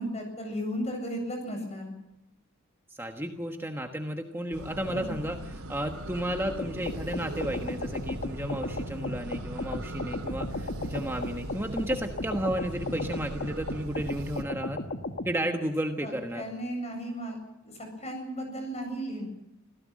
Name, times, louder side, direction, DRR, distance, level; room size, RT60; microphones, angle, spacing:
voice 1, 0.0-1.9 4.9-5.1 16.0-17.4 17.6-17.7 18.0-19.3, equal, 30° left, 4 dB, 7.8 m, -35 dB
voice 2, 2.9-14.8 15.2-16.4, right 1 dB, 10° right, 4 dB, 1.2 m, -33 dB
sound 1, 4.5-14.4, right 1 dB, 85° right, 3.1 m, -39 dB
sound 2, 6.6-15.3, left 2 dB, 50° left, 1.4 m, -36 dB
26.5 x 17.0 x 7.5 m, 0.95 s
head